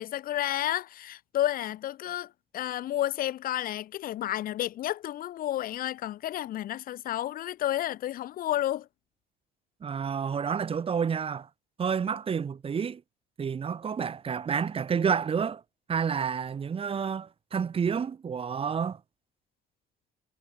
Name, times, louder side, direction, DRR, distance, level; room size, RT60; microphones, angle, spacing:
voice 1, 0.0-8.9, left 13 dB, 60° left, 0.7 m, -31 dB
voice 2, 9.8-11.5 11.8-13.0 13.4-15.6 15.9-19.0, right 6 dB, 35° right, 1.3 m, -29 dB
cardioid pair, 110°, 17 cm